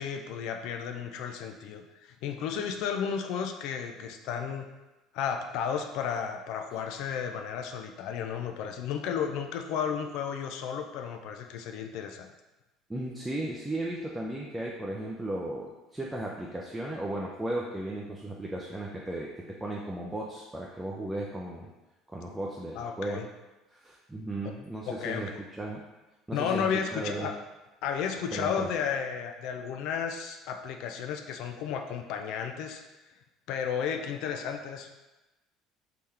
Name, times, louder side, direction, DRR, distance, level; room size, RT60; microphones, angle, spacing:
voice 1, 0.0-4.7 5.1-12.3 22.7-23.3 24.4-24.5 24.8-25.4 26.3-27.3 27.8-32.8 33.5-34.9, left 7 dB, 70° left, 5 dB, 0.3 m, -33 dB
voice 2, 12.9-21.7 22.1-23.2 23.7-25.3 25.6-25.8 26.3-27.3 28.3-28.7, right 1 dB, 10° right, -3 dB, 0.5 m, -35 dB
3.5 x 2.9 x 3.3 m, 1.1 s
supercardioid pair, 85°, 0 cm